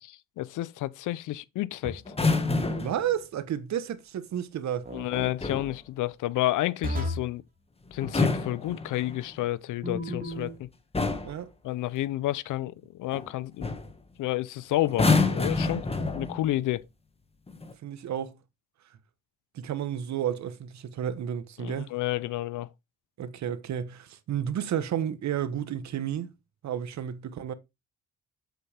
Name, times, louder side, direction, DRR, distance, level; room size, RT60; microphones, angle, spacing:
voice 1, 0.0-2.1 4.9-7.4 7.9-10.7 11.6-13.8 14.2-15.9 16.1-16.8 21.6-22.7, left 15 dB, 80° left, 0.8 m, -30 dB
sound 1, 1.8-2.3 4.8-5.3 6.8-7.4 9.8-10.5, left 1 dB, 30° right, 3.1 m, -34 dB
sound 2, 2.1-3.0 5.1-5.8 7.9-9.3 10.3-10.6 10.9-11.4 13.1-13.3 13.6-13.9 14.9-16.5 17.5-17.7, left 3 dB, 20° left, 1.9 m, -27 dB
voice 2, 2.8-4.9 11.2-11.5 17.8-18.3 19.5-21.9 23.2-26.3 26.6-27.5, right 9 dB, 65° right, 1.3 m, -31 dB
8.1 x 7.8 x 3.5 m
cardioid pair, 90°, 30 cm